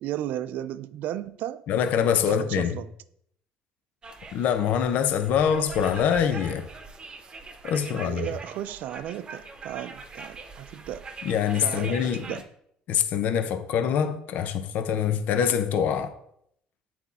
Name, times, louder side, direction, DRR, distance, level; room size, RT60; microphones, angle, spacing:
voice 1, 0.0-1.6 2.3-2.9 7.8-11.1 11.6-12.4, right 12 dB, 70° right, 0.4 m, -35 dB
voice 2, 1.7-2.8 4.3-6.6 7.6-8.3 11.2-12.3 12.9-16.1, left 8 dB, 65° left, 0.7 m, -24 dB
sound 1, 4.0-12.4, right 3 dB, 30° right, 1.0 m, -42 dB
8.3 x 4.3 x 4.1 m
cardioid pair, 105°, 3 cm